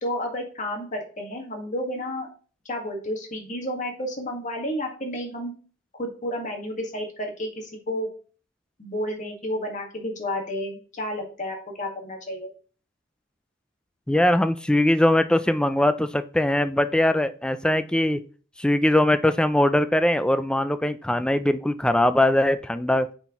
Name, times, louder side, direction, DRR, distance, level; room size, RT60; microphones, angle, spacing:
voice 1, 0.0-2.3 2.7-5.5 6.0-8.1 8.8-12.5, left 1 dB, 40° left, 2 dB, 1.6 m, -31 dB
voice 2, 14.1-18.2 18.6-23.1, left 1 dB, 5° left, 12 dB, 0.3 m, -21 dB
8.8 x 4.4 x 3.0 m, 0.40 s
head